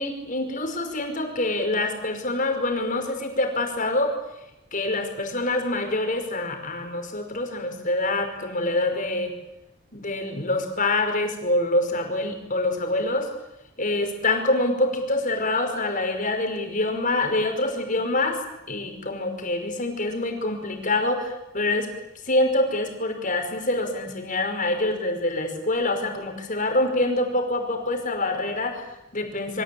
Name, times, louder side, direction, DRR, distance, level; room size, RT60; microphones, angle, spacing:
voice 1, 0.0-4.2 4.7-9.3 9.9-13.3 13.8-18.4 18.7-21.9 22.3-29.6, left 2 dB, 40° left, 4 dB, 5.5 m, -25 dB
27.5 x 24.0 x 8.8 m, 0.89 s
head